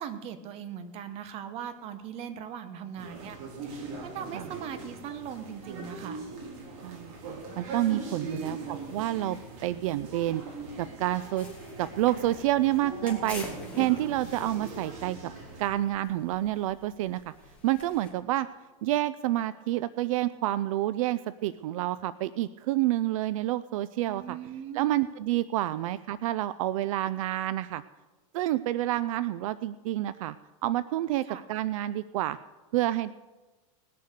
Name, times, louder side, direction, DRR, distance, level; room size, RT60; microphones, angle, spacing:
voice 1, 0.0-3.4 3.6-6.2 8.2-8.9 24.1-25.1 31.2-31.4, right 8 dB, 35° right, 10 dB, 1.1 m, -39 dB
sound 1, 3.0-15.7, right 3 dB, 55° right, 3.2 m, -41 dB
voice 2, 6.8-8.6 8.9-10.4 10.8-11.5 11.8-13.4 13.8-15.3 15.6-17.3 17.6-18.5 18.8-24.4 24.7-27.8 28.3-30.4 30.6-32.4 32.7-33.1, right 14 dB, 70° right, 16 dB, 0.4 m, -28 dB
sound 2, 11.3-18.1, left 2 dB, 5° left, 2.8 m, -46 dB
19.5 x 6.7 x 6.6 m, 1.3 s
supercardioid pair, 155°, 18 cm